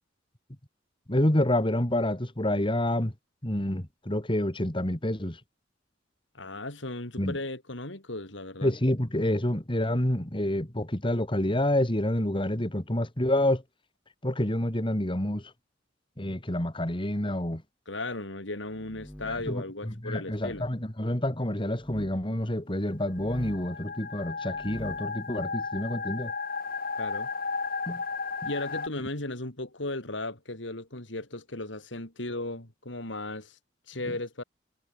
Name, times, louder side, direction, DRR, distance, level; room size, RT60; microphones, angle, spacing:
voice 1, 1.1-3.1 3.4-5.4 7.2-7.4 8.6-13.6 14.2-15.5 16.2-17.6 19.2-26.3 27.9-28.0 34.1-34.2, left 1 dB, 25° left, 2.6 m, -28 dB
voice 2, 6.3-8.7 17.9-20.7 27.0-27.3 28.4-33.6 33.9-34.4, left 2 dB, 75° left, 4.2 m, -36 dB
sound 1, 18.6-19.6 20.3-20.7 21.7-22.2 23.0-23.7 24.4-25.1, equal, 5° left, 4.2 m, -44 dB
sound 2, 23.1-28.9, left 4 dB, 50° left, 4.2 m, -34 dB
head